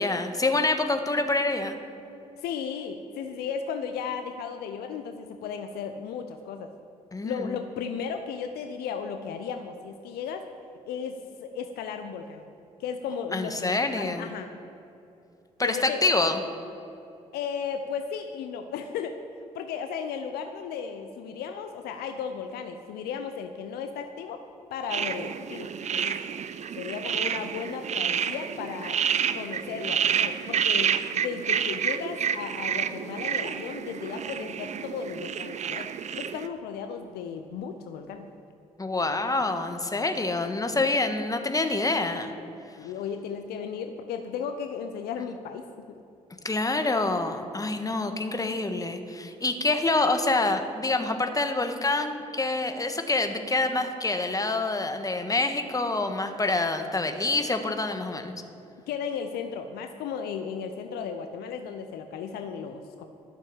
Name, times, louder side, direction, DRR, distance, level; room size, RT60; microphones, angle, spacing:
voice 1, 0.0-1.7 7.1-7.5 13.3-14.3 15.6-16.4 38.8-42.3 46.4-58.3, left 2 dB, 20° left, 6 dB, 1.4 m, -26 dB
voice 2, 2.4-6.7 7.2-10.5 10.9-12.5 12.8-14.5 15.6-16.0 17.3-19.2 19.5-24.4 24.7-26.2 26.8-29.0 29.3-38.3 42.8-45.9 58.9-63.0, left 6 dB, 65° left, 7 dB, 0.7 m, -35 dB
sound 1, 24.9-36.5, right 8 dB, 45° right, 0.6 m, -29 dB
12.5 x 7.4 x 7.2 m, 2.8 s
figure-of-eight pair, 40°, 17 cm